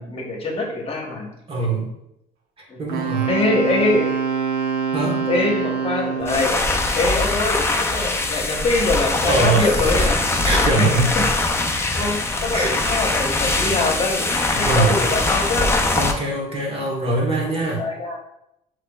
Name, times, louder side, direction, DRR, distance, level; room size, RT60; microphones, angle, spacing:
voice 1, 0.0-1.3 2.7-2.8 3.3-4.1 5.3-6.6 7.0-10.2 10.7-10.9 11.1-11.2 11.9-14.3 14.6-15.7 16.5-16.7 17.5-18.2, left 2 dB, 35° left, 0 dB, 1.1 m, -23 dB
voice 2, 1.5-1.9 2.6-3.3 4.9-5.3 9.1-10.1 10.4-11.2 12.5-13.0 14.5-15.0 15.9-17.8, right 2 dB, 35° right, -1 dB, 1.3 m, -22 dB
Wind instrument woodwind instrument, 2.9-6.6, right 6 dB, 80° right, 0.9 m, -24 dB
sound 1, 6.2-16.1, left 2 dB, 15° left, 0.5 m, -22 dB
5.9 x 3.2 x 2.4 m, 0.81 s
cardioid pair, 110°, 17 cm